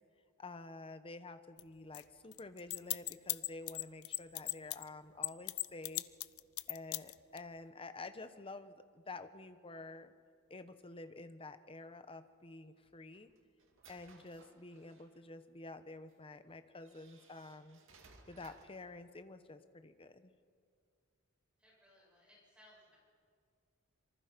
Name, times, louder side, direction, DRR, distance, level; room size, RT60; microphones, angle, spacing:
voice 1, 0.4-6.0 6.7-10.1 10.5-13.3 13.9-17.8 18.3-20.3, left 3 dB, 25° left, 10 dB, 1.0 m, -50 dB
sound 1, 1.6-1.7 1.9-2.0 2.3-4.8 5.2-7.4, left 20 dB, 70° left, 0.5 m, -37 dB
sound 2, 12.8-15.2 16.1-16.2 16.8-18.8, right 4 dB, 60° right, 2.3 m, -63 dB
voice 2, 21.6-23.0, left 1 dB, 5° right, -5 dB, 7.5 m, -64 dB
26.0 x 23.5 x 5.2 m, 2.1 s
head